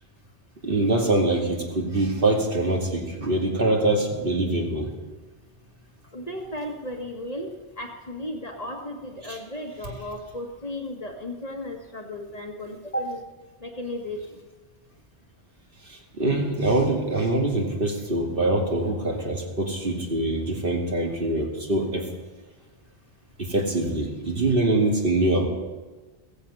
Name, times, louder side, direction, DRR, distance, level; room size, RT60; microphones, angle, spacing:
voice 1, 0.6-4.9 9.3-9.4 15.9-22.1 23.4-25.5, right 2 dB, 60° right, 0 dB, 2.7 m, -24 dB
voice 2, 6.1-13.2 13.6-14.4, left 1 dB, 40° left, 1 dB, 2.0 m, -34 dB
16.5 x 15.0 x 5.6 m, 1.2 s
omnidirectional pair, 1.0 m